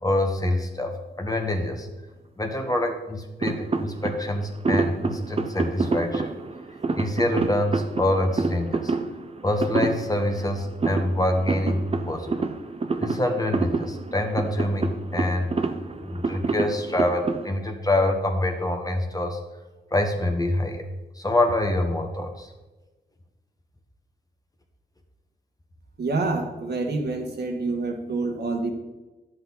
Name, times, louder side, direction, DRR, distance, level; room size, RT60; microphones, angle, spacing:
voice 1, 0.0-1.9 2.4-6.3 6.9-8.9 9.4-12.5 13.0-15.5 16.0-19.4 19.9-20.9 21.2-22.5, left 1 dB, 20° left, 4 dB, 1.4 m, -25 dB
sound 1, 3.4-17.5, right 3 dB, 35° right, 0.8 m, -28 dB
voice 2, 26.0-28.7, right 3 dB, 70° right, 2 dB, 1.7 m, -27 dB
10.5 x 7.9 x 4.0 m, 1.1 s
cardioid pair, 80°, 18 cm